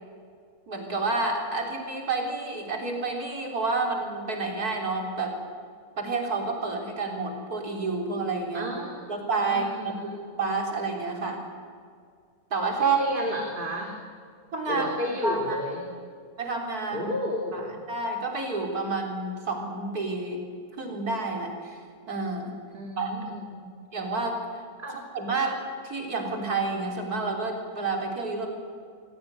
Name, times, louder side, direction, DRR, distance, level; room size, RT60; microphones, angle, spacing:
voice 1, 0.7-5.4 6.0-8.7 9.1-11.4 12.5-13.0 14.5-14.9 15.2-15.6 16.4-17.1 17.5-17.6 17.9-20.4 20.8-21.8 22.1-22.6 23.0-23.1 23.9-24.6 25.1-28.5, right 3 dB, 80° right, 2 dB, 4.4 m, -29 dB
voice 2, 8.5-10.2 12.8-13.9 14.7-15.9 16.9-17.8 22.7-23.6 24.8-25.0, left 1 dB, 35° right, 1 dB, 2.6 m, -32 dB
27.5 x 17.5 x 9.8 m, 2.2 s
omnidirectional pair, 1.6 m